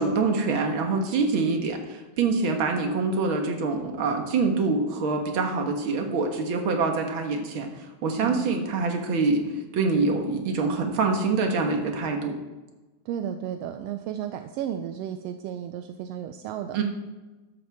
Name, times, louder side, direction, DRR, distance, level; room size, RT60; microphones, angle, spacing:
voice 1, 0.0-7.7 8.0-9.4 9.7-12.3 16.7-16.8, right 4 dB, 50° right, 3 dB, 2.0 m, -25 dB
voice 2, 8.2-8.5 13.0-16.8, right 9 dB, 80° right, 8 dB, 1.5 m, -33 dB
14.0 x 11.5 x 3.6 m, 1.1 s
omnidirectional pair, 3.3 m